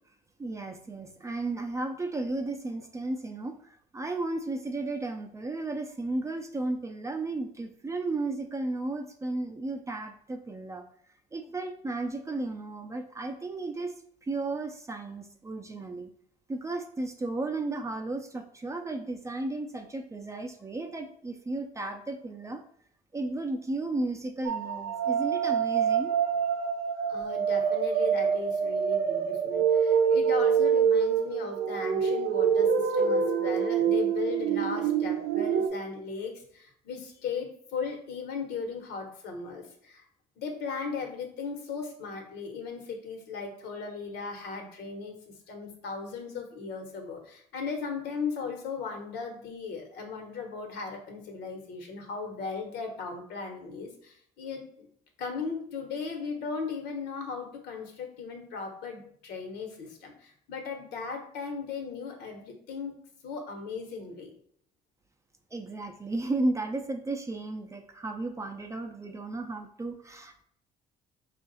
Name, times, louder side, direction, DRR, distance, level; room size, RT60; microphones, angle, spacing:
voice 1, 0.4-10.8 11.3-13.9 14.2-16.1 16.5-22.6 23.1-26.2 65.5-70.4, right 2 dB, 15° right, 5 dB, 0.5 m, -34 dB
sound 1, 24.4-35.7, right 7 dB, 70° right, 0.5 m, -26 dB
voice 2, 27.1-40.0 40.4-54.9 55.2-62.9 63.2-64.3, left 5 dB, 75° left, 3 dB, 1.2 m, -37 dB
4.7 x 2.5 x 4.0 m, 0.63 s
cardioid pair, 110°, 17 cm